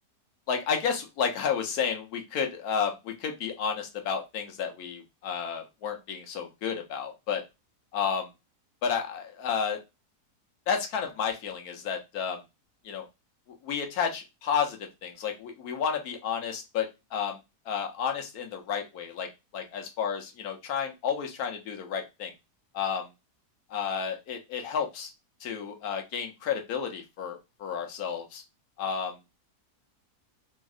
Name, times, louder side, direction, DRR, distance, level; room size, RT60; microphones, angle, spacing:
voice 1, 0.5-7.4 7.9-8.3 8.8-9.8 10.7-12.4 12.8-13.0 13.6-17.4 17.7-19.3 19.5-22.3 22.7-23.1 23.7-25.1 25.4-28.4 28.8-29.2, left 7 dB, 75° left, 4 dB, 1.1 m, -31 dB
3.0 x 2.7 x 2.4 m, 0.24 s
omnidirectional pair, 1.7 m